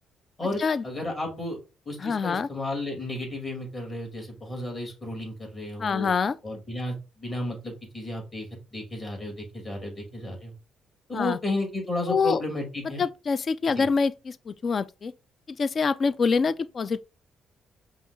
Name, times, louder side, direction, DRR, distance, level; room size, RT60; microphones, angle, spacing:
voice 1, 0.4-1.6 1.9-6.1 6.4-8.5 8.7-10.5 11.1-13.0 13.8-13.9, left 2 dB, 25° left, 2.4 m, -33 dB
voice 2, 2.0-2.5 5.8-6.4 11.1-11.4 12.1-12.4 13.0-15.1 15.6-17.0, left 5 dB, 40° left, 0.3 m, -25 dB
5.4 x 2.3 x 4.0 m
cardioid pair, 110°, 0 cm